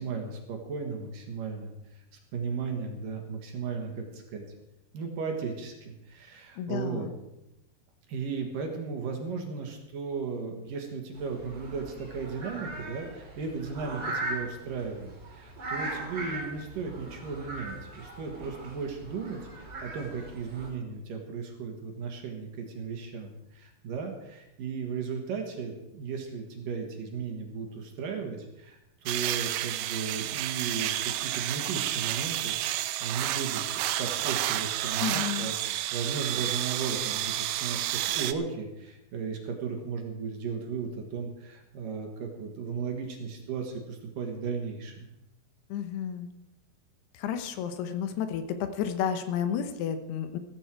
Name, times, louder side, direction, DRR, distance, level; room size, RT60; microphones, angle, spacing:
voice 1, 0.0-2.0 2.3-4.4 4.9-7.1 8.1-45.1, right 5 dB, 60° right, 3 dB, 2.9 m, -36 dB
voice 2, 6.6-7.1 35.0-35.5 45.7-46.3 47.1-50.4, left 8 dB, 80° left, 9 dB, 3.0 m, -31 dB
sound 1, 11.1-20.7, right 2 dB, 30° right, 2.8 m, -39 dB
sound 2, 29.1-38.3, right 14 dB, 85° right, 2.8 m, -30 dB
15.0 x 14.5 x 4.6 m, 0.92 s
omnidirectional pair, 4.8 m